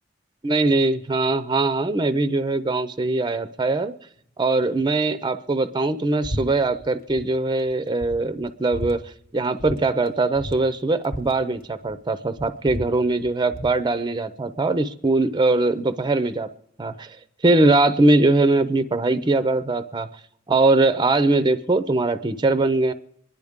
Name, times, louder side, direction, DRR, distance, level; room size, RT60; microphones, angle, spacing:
voice 1, 0.4-3.9 4.4-9.0 9.3-16.5 16.8-17.2 17.4-20.1 20.5-22.9, right 2 dB, 20° right, 12 dB, 0.5 m, -21 dB
sound 1, 6.2-6.5 6.7-7.3 7.7-7.8 8.0-9.0 9.6-9.8 10.1-10.2 10.3-12.0 12.3-13.8, equal, 45° left, 1.1 m, -34 dB
24.5 x 10.5 x 3.6 m, 0.73 s
head